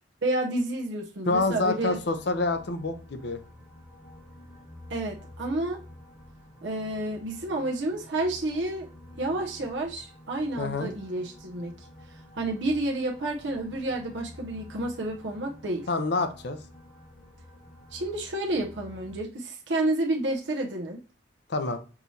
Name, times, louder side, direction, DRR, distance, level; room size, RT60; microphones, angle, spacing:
voice 1, 0.2-2.0 4.9-5.8 6.6-8.9 9.2-11.7 12.1-15.9 17.9-21.0, right 2 dB, 65° right, 0.7 m, -30 dB
voice 2, 1.3-3.4 10.6-10.9 15.9-16.6 21.5-21.8, left 3 dB, 60° left, 0.7 m, -27 dB
sound 1, 1.3-19.2, left 1 dB, ahead, 1.1 m, -49 dB
5.9 x 3.1 x 2.7 m
head